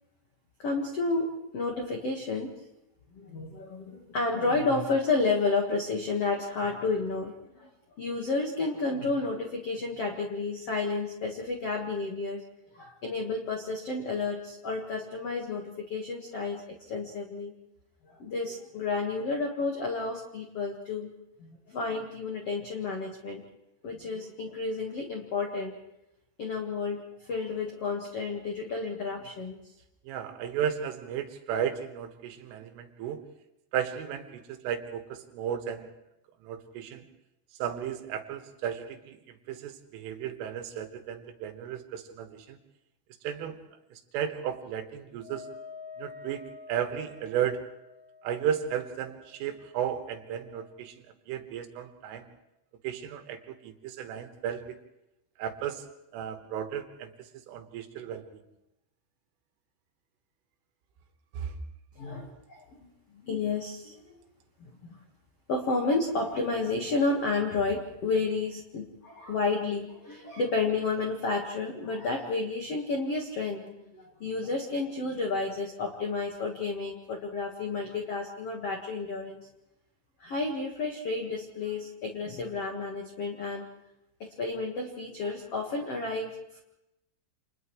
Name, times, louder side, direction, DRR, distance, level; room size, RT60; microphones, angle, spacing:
voice 1, 0.6-2.5 3.1-7.7 8.0-12.4 12.7-16.6 16.9-17.5 18.0-21.1 21.4-23.4 23.8-25.7 26.4-29.6 61.9-62.9 63.2-64.2 64.6-65.0 65.5-79.4 80.2-83.7 84.2-86.6, left 3 dB, 85° left, 1 dB, 1.3 m, -31 dB
voice 2, 30.1-33.2 33.7-35.9 36.4-37.1 37.6-42.6 43.2-43.6 43.9-45.5 46.0-46.4 46.7-47.6 48.2-51.0 51.3-52.3 52.8-54.8 55.4-55.9 56.1-57.1 57.5-58.2 61.4-61.5, right 9 dB, 90° right, 7 dB, 3.9 m, -34 dB
Wind instrument woodwind instrument, 45.2-50.8, left 4 dB, 45° left, 5.9 m, -49 dB
29.0 x 27.5 x 3.2 m, 0.88 s
omnidirectional pair, 5.7 m